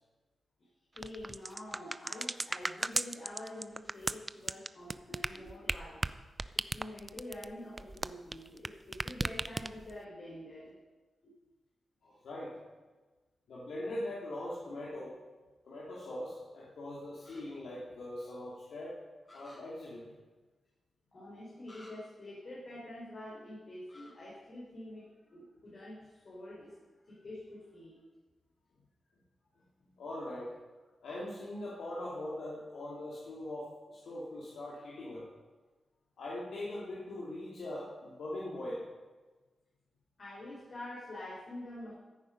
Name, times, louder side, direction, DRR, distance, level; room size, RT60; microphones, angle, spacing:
voice 1, 0.9-6.1 6.5-10.8 11.2-11.3 21.1-26.8 27.0-28.0 40.2-41.9, left 1 dB, 55° left, -6 dB, 4.7 m, -47 dB
sound 1, 1.0-8.7 8.9-10.0, right 2 dB, 30° right, 0.5 m, -35 dB
voice 2, 12.0-12.6 13.5-15.2 15.6-19.0 19.3-20.1 29.8-30.5 31.0-35.3 36.2-38.9, left 1 dB, 80° left, -6 dB, 2.8 m, -41 dB
sound 2, 17.2-17.4 19.3-19.6 21.7-21.9 23.9-24.1, left 2 dB, 35° left, 4.6 m, -55 dB
15.0 x 9.1 x 5.4 m, 1.3 s
cardioid pair, 50°, 0 cm